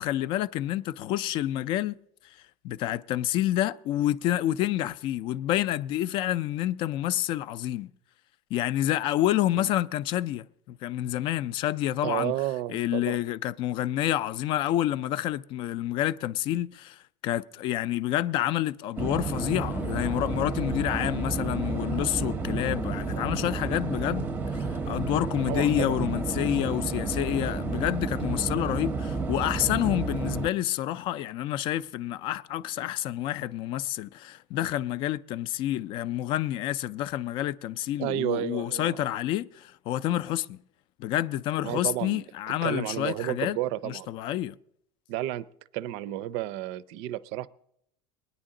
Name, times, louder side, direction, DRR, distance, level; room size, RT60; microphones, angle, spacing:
voice 1, 0.0-2.0 2.6-7.9 8.5-12.3 12.7-40.6 41.0-43.6 43.8-44.5, left 13 dB, 45° left, 0.4 m, -28 dB
voice 2, 12.0-13.2 25.4-26.0 38.0-39.0 41.6-42.2 42.6-44.1 45.1-45.5 45.7-47.5, right 14 dB, 55° right, 0.5 m, -31 dB
sound 1, 19.0-30.5, right 4 dB, 15° right, 0.6 m, -31 dB
21.5 x 9.9 x 3.8 m
supercardioid pair, 145°, 12 cm